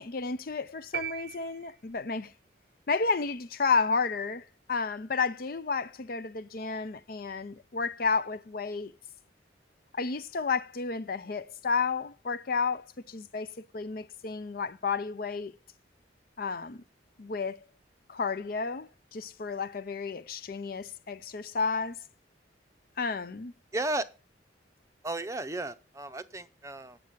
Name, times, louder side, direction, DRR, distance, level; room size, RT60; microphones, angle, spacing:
voice 1, 0.0-2.3 2.9-8.9 9.9-15.6 16.4-16.8 17.2-17.6 18.1-22.0 23.0-23.5, left 4 dB, 50° left, 0.5 m, -32 dB
sound 1, 0.9-2.2, right 10 dB, 55° right, 0.7 m, -39 dB
voice 2, 23.7-24.1 25.0-27.0, right 2 dB, 15° right, 0.6 m, -34 dB
9.0 x 7.4 x 7.3 m
head